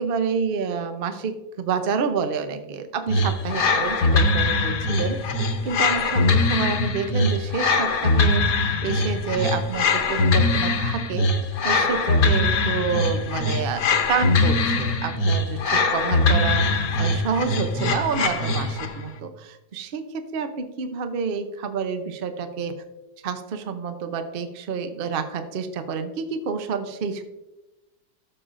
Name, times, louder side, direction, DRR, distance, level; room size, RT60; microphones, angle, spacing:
voice 1, 0.0-5.2 5.6-8.5 8.8-11.3 11.6-22.8 23.2-27.2, right 5 dB, 80° right, 8 dB, 0.5 m, -28 dB
sound 1, 3.1-19.0, left 3 dB, 55° left, 1.2 m, -22 dB
12.5 x 6.9 x 2.5 m, 1.0 s
omnidirectional pair, 2.0 m